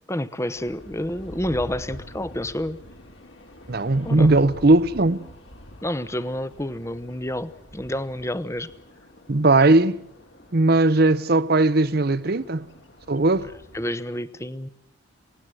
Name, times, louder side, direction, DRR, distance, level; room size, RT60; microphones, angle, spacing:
voice 1, 0.1-2.8 4.0-4.3 5.8-8.7 13.7-14.7, left 1 dB, 15° left, 0.9 m, -29 dB
sound 1, 0.6-13.9, equal, 65° left, 3.4 m, -45 dB
voice 2, 3.7-5.3 9.3-10.0 10.5-12.7 13.1-13.5, right 2 dB, 50° right, 0.8 m, -18 dB
28.0 x 18.0 x 7.8 m
head